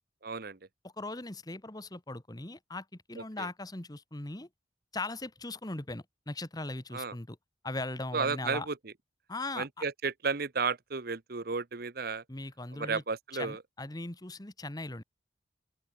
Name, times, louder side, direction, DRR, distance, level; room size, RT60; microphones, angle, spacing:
voice 1, 0.2-0.6 3.2-3.5 6.9-7.1 8.1-8.7 9.6-12.2 12.7-13.6, right 4 dB, 55° right, 1.0 m, -33 dB
voice 2, 0.8-4.5 4.9-7.4 7.6-8.7 9.3-9.7 12.3-13.0 13.3-15.0, left 2 dB, 20° left, 1.4 m, -39 dB
open air
head